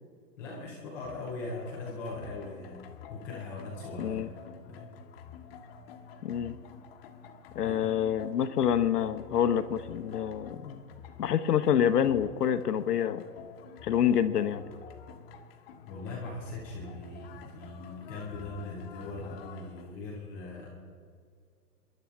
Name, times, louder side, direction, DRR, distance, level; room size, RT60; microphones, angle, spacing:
voice 1, 0.4-4.9 7.6-7.8 15.9-20.8, left 2 dB, 5° left, -4 dB, 0.5 m, -40 dB
sound 1, 1.0-19.9, left 7 dB, 35° left, 1.2 m, -49 dB
voice 2, 4.0-4.3 6.2-6.6 7.5-10.8 11.2-13.2 13.8-14.6, left 9 dB, 65° left, 11 dB, 1.0 m, -27 dB
28.0 x 11.0 x 3.6 m, 2.1 s
hypercardioid pair, 145°, 50 cm